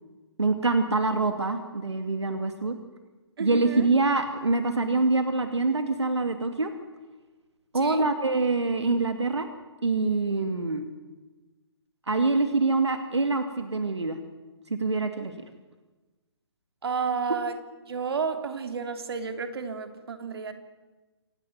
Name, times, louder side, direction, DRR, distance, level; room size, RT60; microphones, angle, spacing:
voice 1, 0.4-2.8 3.4-6.7 7.7-9.5 9.8-10.9 12.1-14.2 14.7-15.3, right 3 dB, 90° right, 7 dB, 2.5 m, -25 dB
voice 2, 3.4-3.9 7.7-8.0 16.8-17.5 17.9-20.5, right 5 dB, 65° right, 8 dB, 3.2 m, -31 dB
27.0 x 16.5 x 9.6 m, 1.2 s
figure-of-eight pair, 140°, 14 cm